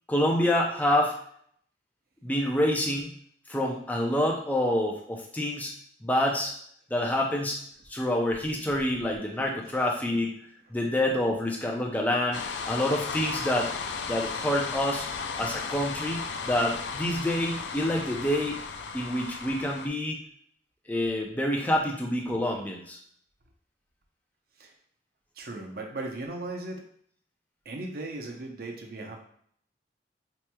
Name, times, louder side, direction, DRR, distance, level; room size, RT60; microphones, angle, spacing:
voice 1, 0.1-1.1 2.2-3.1 3.5-5.7 6.0-6.5 6.9-7.6 7.9-10.3 10.7-13.7 14.1-15.1 15.4-18.6 18.9-20.2 20.9-23.0, left 1 dB, 10° left, -1 dB, 0.4 m, -27 dB
sound 1, 12.3-19.9, left 5 dB, 75° left, 0.3 m, -35 dB
voice 2, 25.4-26.8 27.7-29.2, right 2 dB, 55° right, 2 dB, 0.6 m, -37 dB
4.4 x 3.0 x 2.2 m, 0.62 s
head